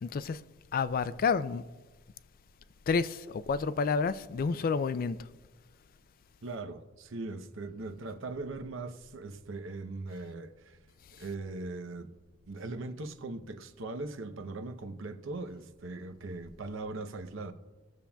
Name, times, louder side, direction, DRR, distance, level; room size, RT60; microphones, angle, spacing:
voice 1, 0.0-0.4 0.7-1.6 2.9-5.3, left 5 dB, 45° left, 0.3 m, -29 dB
voice 2, 6.4-10.8 11.2-12.1 12.5-17.5, right 3 dB, 65° right, 0.7 m, -40 dB
18.5 x 7.0 x 2.3 m
head